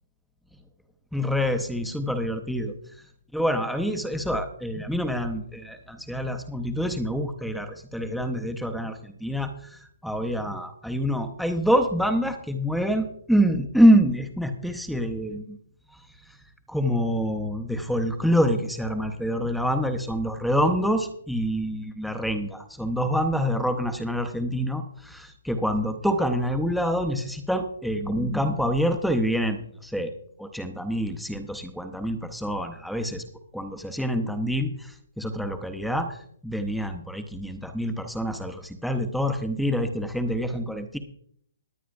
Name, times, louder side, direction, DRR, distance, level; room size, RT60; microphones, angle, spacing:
voice 1, 1.1-2.7 3.3-15.6 16.7-30.1 30.4-33.2 33.5-36.2 36.4-41.0, equal, ahead, 7 dB, 0.6 m, -26 dB
21.0 x 9.1 x 2.5 m, 0.66 s
hypercardioid pair, 170°, 0 cm